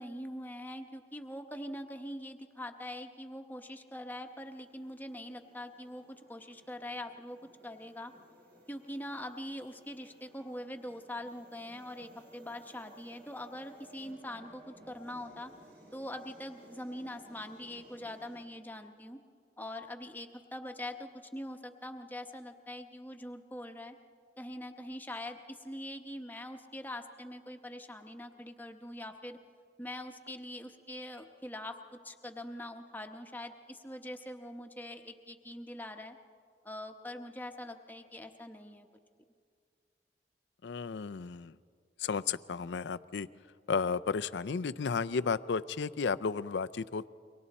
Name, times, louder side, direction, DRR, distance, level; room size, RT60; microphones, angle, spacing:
voice 1, 0.0-7.4 7.6-8.1 8.7-15.5 15.9-19.2 19.6-24.0 24.4-29.4 29.8-36.2 36.6-38.9, left 1 dB, 10° left, 5 dB, 1.0 m, -43 dB
sound 1, 4.2-18.4, right 1 dB, 65° right, 3.8 m, -59 dB
voice 2, 40.6-41.6 42.0-43.3 43.7-47.1, left 5 dB, 80° left, 14 dB, 0.5 m, -33 dB
29.0 x 24.0 x 4.2 m, 2.2 s
head